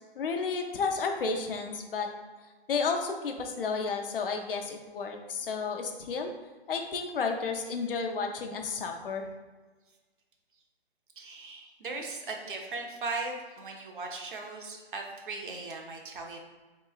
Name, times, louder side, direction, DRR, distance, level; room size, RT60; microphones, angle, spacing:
voice 1, 0.2-2.1 2.7-6.3 6.7-9.3, left 4 dB, 60° left, 4 dB, 0.5 m, -32 dB
voice 2, 11.2-16.4, right 3 dB, 55° right, 2 dB, 0.7 m, -38 dB
3.7 x 2.9 x 2.3 m, 1.3 s
hypercardioid pair, 155°, 32 cm